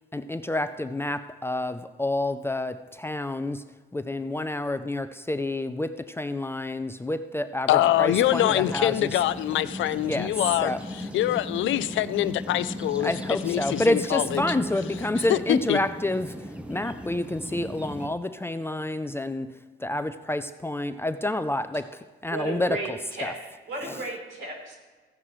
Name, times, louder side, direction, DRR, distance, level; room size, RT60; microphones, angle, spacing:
voice 1, 0.1-3.6 3.9-9.2 10.1-11.1 13.0-19.5 19.8-23.3 23.8-24.0, left 1 dB, 10° left, 10 dB, 0.5 m, -29 dB
voice 2, 7.7-10.7 11.1-13.1 13.4-14.4 15.3-15.8, left 13 dB, 75° left, 15 dB, 0.5 m, -24 dB
sound 1, 7.8-18.1, left 1 dB, 5° right, 1.0 m, -37 dB
sound 2, 14.3-16.4, right 2 dB, 45° right, 2.3 m, -42 dB
voice 3, 22.3-23.3 23.7-24.8, right 2 dB, 75° right, -1 dB, 3.6 m, -34 dB
15.5 x 9.7 x 3.2 m, 1.4 s
cardioid pair, 90°, 20 cm